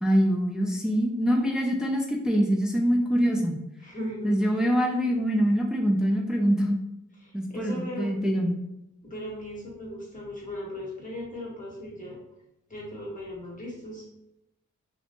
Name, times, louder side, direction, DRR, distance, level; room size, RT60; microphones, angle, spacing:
voice 1, 0.0-3.6 4.2-6.8 7.3-8.6, equal, ahead, 1 dB, 0.4 m, -24 dB
voice 2, 3.8-4.6 5.0-5.1 7.2-8.2 9.0-12.2 12.7-14.0, equal, 25° left, -4 dB, 1.3 m, -37 dB
2.6 x 2.1 x 2.9 m, 0.87 s
cardioid pair, 60°, 31 cm